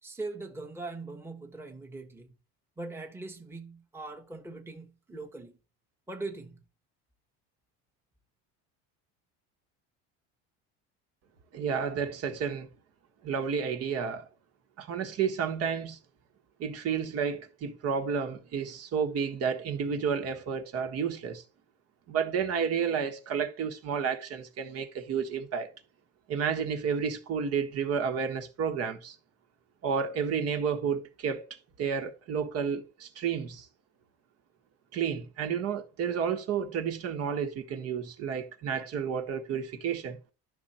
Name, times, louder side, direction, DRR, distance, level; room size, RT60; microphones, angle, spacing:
voice 1, 0.0-2.3 2.8-5.6 6.1-6.6, right 3 dB, 5° right, 1.3 m, -41 dB
voice 2, 11.5-12.7 13.2-14.3 14.8-16.0 16.6-21.4 22.1-25.7 26.3-29.1 29.8-31.4 31.8-33.7 34.9-40.2, right 6 dB, 45° right, 1.5 m, -31 dB
12.0 x 6.5 x 4.4 m
cardioid pair, 145°, 33 cm